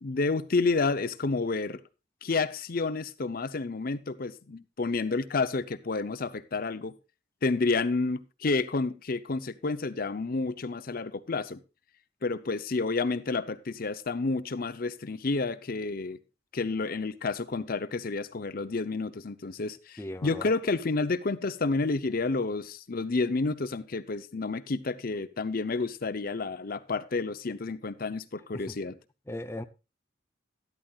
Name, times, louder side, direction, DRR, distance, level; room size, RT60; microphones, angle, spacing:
voice 1, 0.0-1.8 2.2-6.9 7.4-11.6 12.2-16.2 16.5-29.0, left 3 dB, 50° left, 0.7 m, -30 dB
voice 2, 20.0-20.5 28.7-28.8 29.3-29.6, left 1 dB, 15° left, 0.6 m, -37 dB
12.5 x 12.0 x 2.4 m
head